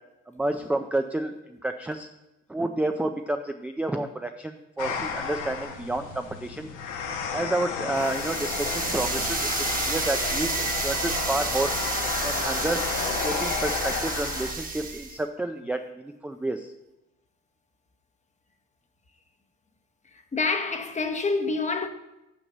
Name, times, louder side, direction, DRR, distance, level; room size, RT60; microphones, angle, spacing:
voice 1, 0.3-2.1 2.5-6.7 7.3-11.7 12.2-12.9 13.1-16.7, right 2 dB, 5° right, 0.4 m, -30 dB
sound 1, 4.8-14.5, left 6 dB, 85° left, 1.2 m, -32 dB
sound 2, 8.0-15.2, right 3 dB, 30° right, 1.3 m, -30 dB
voice 2, 20.0-21.9, left 3 dB, 25° left, 0.9 m, -28 dB
6.4 x 6.1 x 6.6 m
cardioid pair, 100°, 30 cm